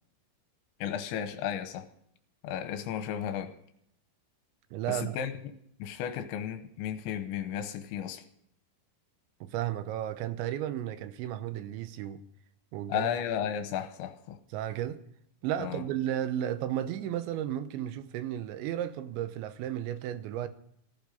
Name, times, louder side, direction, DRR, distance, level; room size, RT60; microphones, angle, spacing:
voice 1, 0.8-1.9 2.4-3.6 4.9-5.3 5.8-8.2 12.9-14.4 15.6-15.8, left 9 dB, 85° left, 3.2 m, -34 dB
voice 2, 4.7-5.2 9.4-12.2 12.7-13.1 14.5-15.0 15.4-20.5, right 11 dB, 80° right, 3.1 m, -33 dB
15.5 x 14.5 x 5.4 m
omnidirectional pair, 5.3 m